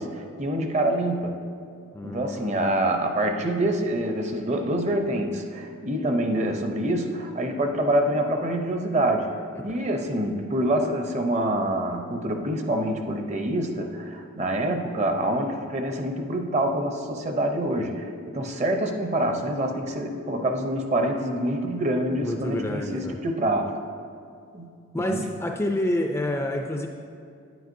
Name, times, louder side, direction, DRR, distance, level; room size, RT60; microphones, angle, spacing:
voice 1, 0.0-1.4 2.0-9.3 9.6-23.7 24.5-24.7 25.0-25.2, right 1 dB, 30° right, 4 dB, 0.6 m, -26 dB
voice 2, 1.9-2.6 9.5-9.6 22.2-23.2 24.9-26.9, left 1 dB, 10° left, 2 dB, 0.3 m, -28 dB
9.7 x 9.2 x 2.6 m, 2.4 s
head